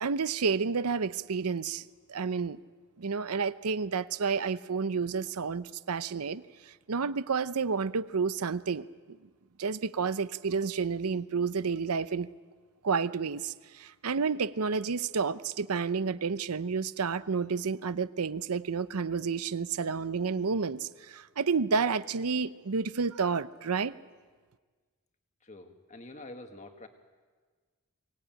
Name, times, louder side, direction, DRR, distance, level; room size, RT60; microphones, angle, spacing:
voice 1, 0.0-2.6 3.0-9.2 9.6-12.3 12.8-23.9, right 5 dB, 90° right, 15 dB, 0.7 m, -30 dB
voice 2, 25.4-26.9, left 2 dB, 30° left, 6 dB, 1.7 m, -46 dB
23.5 x 18.5 x 9.0 m, 1.5 s
head